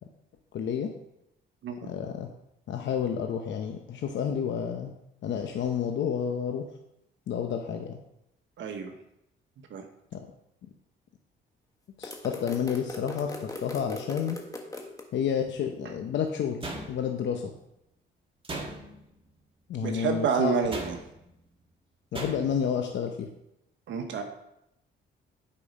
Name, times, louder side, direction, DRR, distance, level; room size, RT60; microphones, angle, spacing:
voice 1, 0.5-0.9 1.8-2.3 2.7-4.9 5.2-6.7 7.3-8.0 10.1-10.3 10.6-10.7 12.0-14.4 15.1-17.5 19.7-20.6 22.1-23.3, left 8 dB, 65° left, 4 dB, 0.9 m, -30 dB
voice 2, 8.6-8.9 9.7-9.8 19.8-21.0 23.9-24.2, right 6 dB, 70° right, 4 dB, 1.3 m, -28 dB
sound 1, 12.0-15.0, left 2 dB, 15° left, 1.4 m, -39 dB
sound 2, 16.6-17.3 18.4-19.1 20.7-21.3 22.1-22.7, right 2 dB, 25° right, 1.8 m, -38 dB
8.6 x 5.4 x 5.4 m, 0.81 s
cardioid pair, 90°, 20 cm